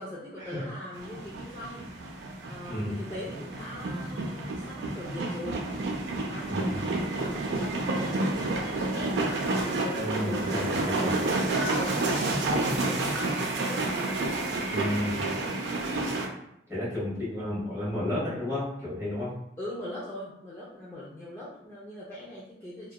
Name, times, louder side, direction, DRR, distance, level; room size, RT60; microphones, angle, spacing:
voice 1, 0.0-2.2 2.4-9.2 9.7-13.9 15.1-15.9 19.6-22.9, left 1 dB, 15° left, -9 dB, 0.3 m, -41 dB
sound 1, 0.9-16.3, right 2 dB, 85° right, 0.4 m, -30 dB
voice 2, 9.9-11.1 14.7-15.2 16.7-19.3, left 1 dB, 15° right, -10 dB, 1.1 m, -32 dB
2.7 x 2.2 x 2.2 m, 0.77 s
head